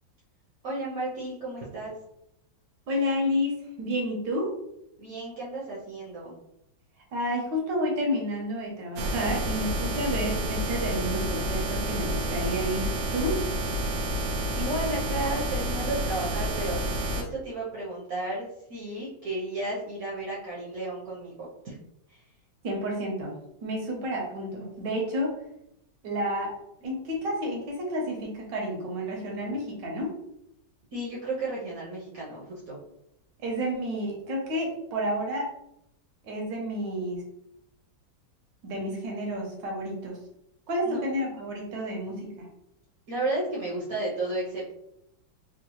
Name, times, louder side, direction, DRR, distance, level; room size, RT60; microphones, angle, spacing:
voice 1, 0.6-1.9 5.0-6.3 14.5-16.8 17.1-21.8 22.1-22.2 30.9-32.8 40.8-41.0 43.1-44.7, right 2 dB, 60° right, -6 dB, 1.1 m, -33 dB
voice 2, 2.9-4.5 7.1-13.4 22.6-23.3 23.6-25.3 26.0-26.5 26.8-30.1 33.4-35.5 36.2-37.2 38.6-40.2 40.7-42.5, equal, 75° right, -1 dB, 1.5 m, -30 dB
sound 1, 9.0-17.2, right 1 dB, 90° right, 1.3 m, -29 dB
3.7 x 2.3 x 2.9 m, 0.81 s
omnidirectional pair, 2.0 m